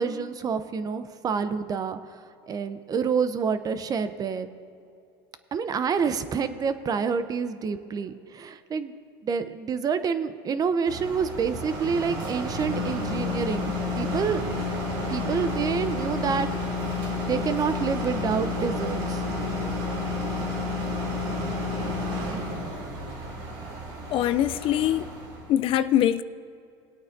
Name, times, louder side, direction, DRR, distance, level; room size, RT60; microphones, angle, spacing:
voice 1, 0.0-4.5 5.5-8.9 9.2-14.4 15.1-16.5 17.3-19.2, right 6 dB, 30° right, 0.7 m, -28 dB
sound 1, 10.9-25.5, left 2 dB, 70° right, 2.4 m, -30 dB
voice 2, 24.1-25.1 25.5-26.2, left 12 dB, 45° left, 0.4 m, -23 dB
19.5 x 8.7 x 2.7 m
supercardioid pair, 105°, 12 cm